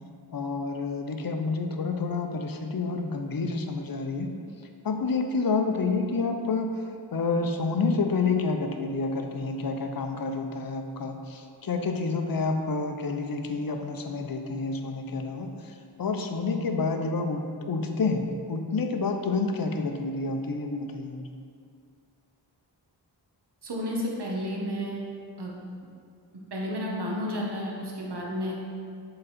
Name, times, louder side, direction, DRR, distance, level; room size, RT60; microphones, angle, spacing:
voice 1, 0.3-4.3 4.8-6.8 7.1-21.3, left 4 dB, 55° left, 5 dB, 0.7 m, -29 dB
voice 2, 23.6-25.0 25.4-25.5 26.5-28.6, equal, 65° right, -3 dB, 1.3 m, -31 dB
7.9 x 3.9 x 4.2 m, 2.3 s
cardioid pair, 50°, 42 cm